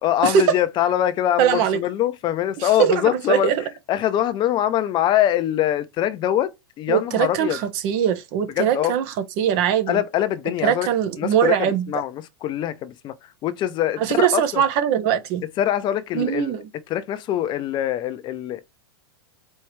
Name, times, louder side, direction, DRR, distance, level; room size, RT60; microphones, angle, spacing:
voice 1, 0.0-3.5 3.9-7.6 8.6-8.9 9.9-10.9 11.2-14.6 15.6-16.6 16.9-18.7, left 12 dB, 35° left, 0.6 m, -23 dB
voice 2, 1.4-1.8 2.6-3.6 6.9-9.0 9.4-10.0 10.6-11.8 14.0-15.4 16.1-16.7, right 9 dB, 50° right, 0.9 m, -21 dB
4.5 x 3.1 x 3.1 m
hypercardioid pair, 110°, 13 cm